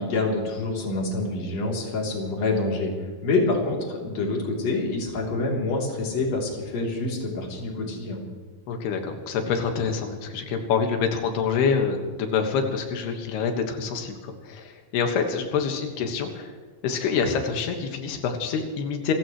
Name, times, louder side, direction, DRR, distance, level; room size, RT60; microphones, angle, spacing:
voice 1, 0.0-8.2, left 2 dB, 45° left, -1 dB, 4.2 m, -27 dB
voice 2, 8.7-16.5 16.8-19.1, left 6 dB, 90° left, 4 dB, 3.6 m, -26 dB
29.0 x 15.0 x 3.1 m, 1.5 s
omnidirectional pair, 4.5 m